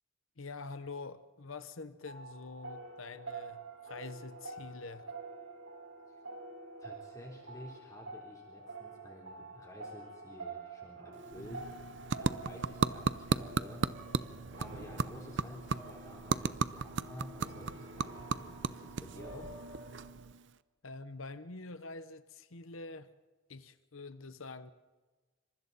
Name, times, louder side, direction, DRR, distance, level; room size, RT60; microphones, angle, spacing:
voice 1, 0.4-5.1 20.8-23.1 23.5-24.7, left 3 dB, 85° left, 1.0 m, -46 dB
sound 1, 2.1-20.1, right 3 dB, 80° right, 4.6 m, -48 dB
voice 2, 6.8-11.6 12.2-13.8 14.6-19.5, equal, 15° left, 3.6 m, -51 dB
sound 2, 11.1-20.6, right 4 dB, 60° right, 0.6 m, -36 dB
27.5 x 26.0 x 4.2 m
head